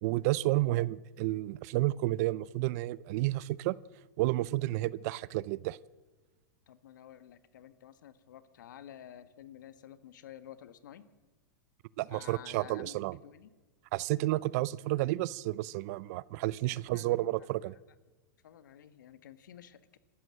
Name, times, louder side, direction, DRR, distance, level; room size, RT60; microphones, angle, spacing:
voice 1, 0.0-3.7 4.2-5.8 12.0-13.2 13.9-17.8, right 17 dB, 55° right, 21 dB, 0.6 m, -31 dB
voice 2, 6.7-11.0 12.1-13.5 16.6-17.8 18.4-20.0, left 10 dB, 80° left, 12 dB, 1.4 m, -52 dB
26.5 x 13.0 x 7.7 m, 1.3 s
hypercardioid pair, 125°, 10 cm